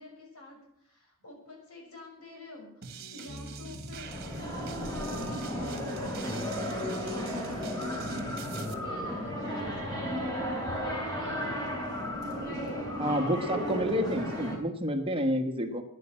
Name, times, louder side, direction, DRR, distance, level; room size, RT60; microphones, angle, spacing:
voice 1, 0.0-8.3 8.6-10.4, left 2 dB, 85° left, 1 dB, 6.3 m, -49 dB
sound 1, 2.8-8.7, right 5 dB, 45° right, 1.6 m, -45 dB
sound 2, 3.0-9.4, left 1 dB, 50° left, 1.1 m, -46 dB
sound 3, 4.0-14.6, equal, 15° left, 3.8 m, -34 dB
voice 2, 13.0-15.8, equal, 25° right, 5 dB, 1.3 m, -29 dB
14.5 x 10.0 x 7.5 m, 0.74 s
head